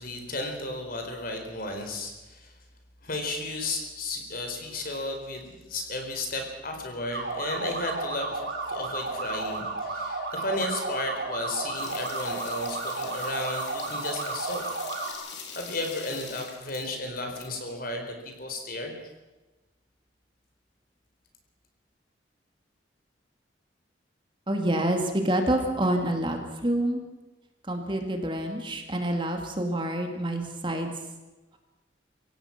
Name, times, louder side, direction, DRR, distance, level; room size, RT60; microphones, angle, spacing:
voice 1, 0.0-2.5 3.0-14.6 15.0-15.3 15.5-18.9, left 2 dB, 50° left, 4 dB, 4.3 m, -34 dB
sound 1, 7.1-15.1, right 3 dB, 60° right, 4.4 m, -33 dB
sound 2, 11.8-17.5 17.7-17.8, left 6 dB, 65° left, 3.9 m, -43 dB
voice 2, 24.5-27.0 27.7-30.9, right 1 dB, 25° right, 4 dB, 2.4 m, -27 dB
26.0 x 16.5 x 6.0 m, 1.1 s
head